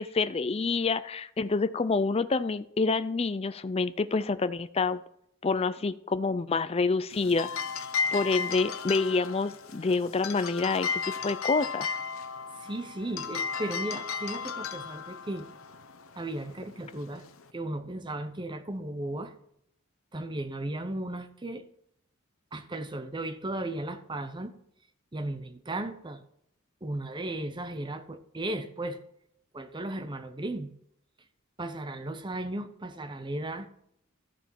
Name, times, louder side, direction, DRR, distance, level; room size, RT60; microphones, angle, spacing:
voice 1, 0.0-5.0 5.4-7.5 8.1-11.9, left 4 dB, 30° left, 0.4 m, -27 dB
sound 1, 7.1-17.5, left 6 dB, 70° left, 0.9 m, -35 dB
voice 2, 12.6-15.5 16.2-17.2 17.5-19.3 20.1-21.6 22.5-24.5 25.1-26.2 26.8-29.0 29.5-30.7 31.6-33.7, right 1 dB, 20° right, 0.8 m, -35 dB
13.5 x 7.2 x 4.5 m
head